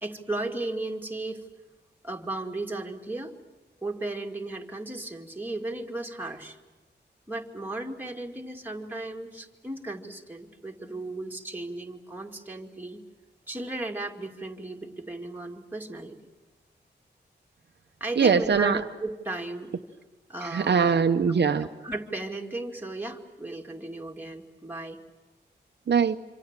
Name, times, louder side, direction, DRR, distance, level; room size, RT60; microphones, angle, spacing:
voice 1, 0.0-1.4 2.0-3.3 3.8-6.6 7.3-13.0 13.5-16.2 18.0-19.7 20.3-21.1 21.8-25.0, right 2 dB, 10° right, 1 dB, 2.3 m, -35 dB
voice 2, 18.2-18.8 20.4-21.7 25.9-26.2, right 6 dB, 70° right, 7 dB, 0.8 m, -22 dB
26.5 x 26.0 x 7.5 m, 1.2 s
wide cardioid pair, 120°, 18 cm